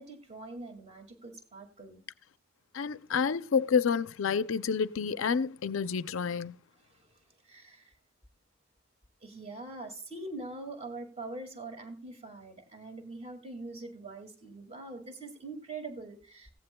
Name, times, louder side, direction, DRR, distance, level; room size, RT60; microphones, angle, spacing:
voice 1, 0.0-2.0 6.9-7.1 7.4-7.9 9.2-16.5, right 2 dB, 30° right, 2.1 m, -43 dB
voice 2, 2.7-6.6, left 6 dB, 65° left, 0.4 m, -29 dB
16.5 x 15.5 x 2.2 m
head